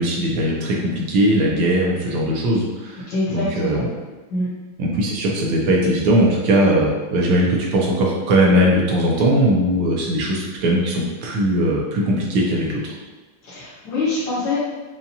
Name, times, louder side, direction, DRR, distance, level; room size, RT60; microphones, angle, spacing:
voice 1, 0.0-3.9 4.8-12.9, right 1 dB, 80° right, -2 dB, 1.6 m, -19 dB
voice 2, 3.1-3.8 4.3-4.5 13.4-14.6, left 2 dB, 65° left, -9 dB, 1.6 m, -24 dB
5.6 x 2.4 x 2.7 m, 1.2 s
omnidirectional pair, 2.3 m